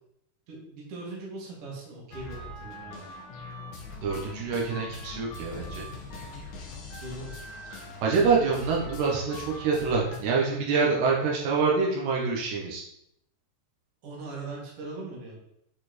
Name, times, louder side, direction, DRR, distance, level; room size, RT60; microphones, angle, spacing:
voice 1, 0.5-3.1 7.0-7.3 8.1-8.5 14.0-15.4, right 2 dB, 40° right, -4 dB, 2.7 m, -40 dB
sound 1, 2.1-10.2, left 2 dB, 60° left, 2.4 m, -42 dB
voice 2, 4.0-5.9 8.0-12.8, right 4 dB, 80° right, -3 dB, 3.4 m, -26 dB
9.4 x 4.5 x 4.3 m, 0.77 s
omnidirectional pair, 4.8 m